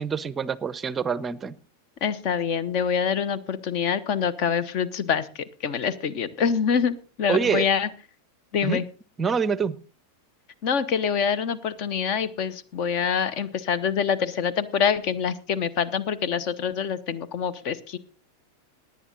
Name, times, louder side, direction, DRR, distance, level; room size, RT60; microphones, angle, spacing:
voice 1, 0.0-1.6 7.3-7.7 8.6-8.8 9.2-9.8, right 6 dB, 20° right, 20 dB, 0.6 m, -26 dB
voice 2, 2.0-7.9 8.5-8.8 10.6-18.0, left 7 dB, 40° left, 17 dB, 1.0 m, -25 dB
18.5 x 9.6 x 4.0 m, 0.37 s
figure-of-eight pair, 90°, 0 cm